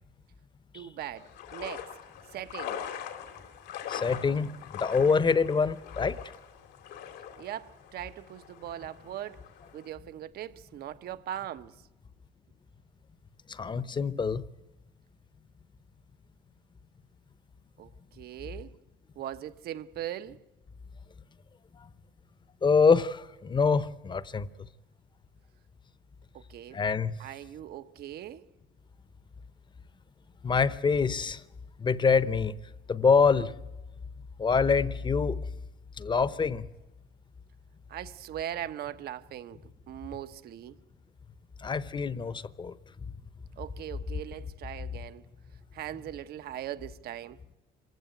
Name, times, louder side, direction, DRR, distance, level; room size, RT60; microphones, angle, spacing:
voice 1, 0.7-1.9 2.3-2.8 7.4-9.4 9.7-11.7 17.8-18.7 19.2-20.4 26.3-26.8 27.2-28.5 37.9-39.6 39.9-40.8 43.6-45.2 45.7-47.4, right 11 dB, 70° right, 1.1 m, -40 dB
sound 1, 1.2-9.9, left 9 dB, 85° left, 3.0 m, -42 dB
voice 2, 3.9-4.5 4.8-6.2 13.5-14.4 22.6-24.5 26.7-27.2 30.4-31.4 31.8-32.5 32.9-33.5 34.4-35.4 36.0-36.7 41.6-42.7, left 5 dB, 25° left, 1.0 m, -25 dB
26.5 x 16.0 x 9.3 m
cardioid pair, 110°, 17 cm